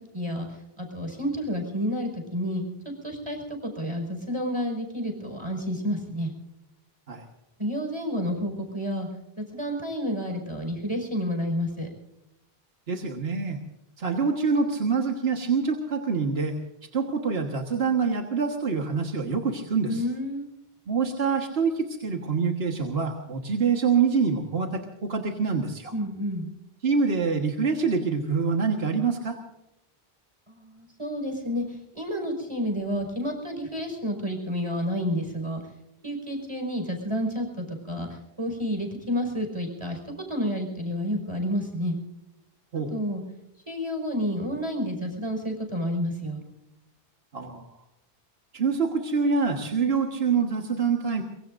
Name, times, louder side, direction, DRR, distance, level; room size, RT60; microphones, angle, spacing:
voice 1, 0.1-6.3 7.6-9.1 9.4-11.9 19.9-20.5 25.9-26.5 30.5-35.6 36.0-42.0 42.9-43.2 43.7-46.4, equal, 30° right, 3 dB, 5.4 m, -30 dB
voice 2, 12.9-13.6 14.0-16.6 16.9-20.0 20.9-25.9 26.8-29.4 42.7-42.9 47.3-47.7 48.5-51.2, right 5 dB, 75° right, 2 dB, 1.7 m, -25 dB
23.5 x 23.5 x 2.6 m, 0.91 s
omnidirectional pair, 1.0 m